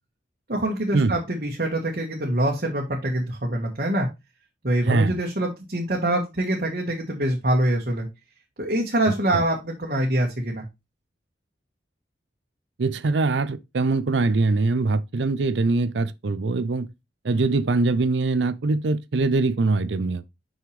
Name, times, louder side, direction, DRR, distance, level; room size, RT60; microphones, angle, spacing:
voice 1, 0.5-4.1 4.6-8.1 8.6-10.6, right 1 dB, 55° right, 1.4 m, -24 dB
voice 2, 4.8-5.2 9.3-9.4 12.8-16.9 17.2-20.3, right 3 dB, 80° right, 0.5 m, -23 dB
5.8 x 5.6 x 3.3 m
head